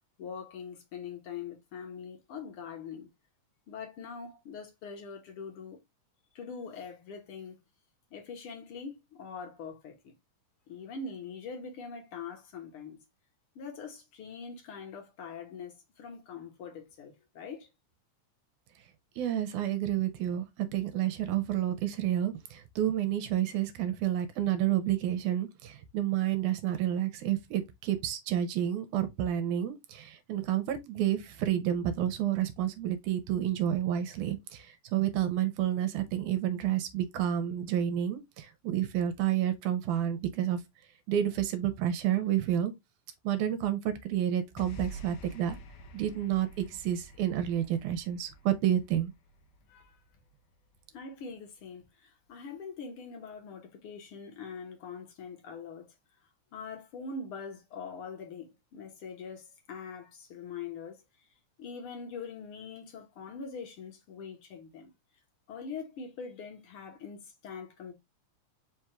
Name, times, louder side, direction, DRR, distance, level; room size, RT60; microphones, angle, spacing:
voice 1, 0.2-3.1 3.7-5.8 6.3-7.6 8.1-10.1 10.7-13.0 13.5-17.7 49.7-50.0 50.9-55.9 56.5-61.0 61.6-64.9 65.5-67.9, left 5 dB, 60° left, 1.5 m, -43 dB
voice 2, 19.2-40.6 41.1-42.7 43.2-45.6 45.9-49.1, right 11 dB, 85° right, 2.1 m, -30 dB
sound 1, 44.6-51.0, left 1 dB, 85° left, 1.2 m, -49 dB
5.1 x 2.3 x 4.3 m
omnidirectional pair, 3.6 m